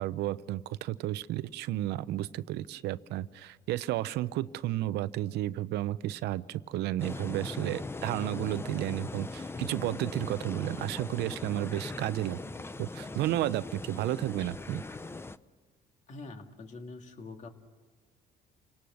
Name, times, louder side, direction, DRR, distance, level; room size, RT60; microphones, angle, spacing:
voice 1, 0.0-12.4 12.8-14.8, right 14 dB, 80° right, 15 dB, 0.7 m, -32 dB
sound 1, 7.0-15.4, left 3 dB, 15° left, 0.7 m, -40 dB
voice 2, 16.1-17.5, left 3 dB, 45° left, 4 dB, 2.5 m, -44 dB
30.0 x 18.5 x 6.5 m, 1.5 s
cardioid pair, 110°, 17 cm